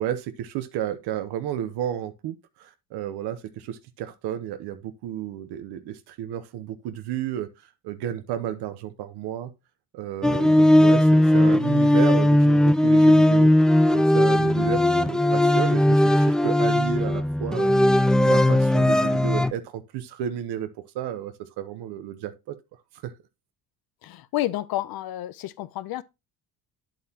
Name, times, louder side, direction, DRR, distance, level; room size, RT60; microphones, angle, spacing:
voice 1, 0.0-9.5 9.9-13.5 13.9-20.7 20.9-22.6 23.0-23.1, right 10 dB, 90° right, 1.0 m, -32 dB
sound 1, 10.2-19.5, left 1 dB, ahead, 0.3 m, -18 dB
voice 2, 24.0-26.0, left 15 dB, 65° left, 0.7 m, -30 dB
8.8 x 7.8 x 2.9 m
cardioid pair, 120°, 39 cm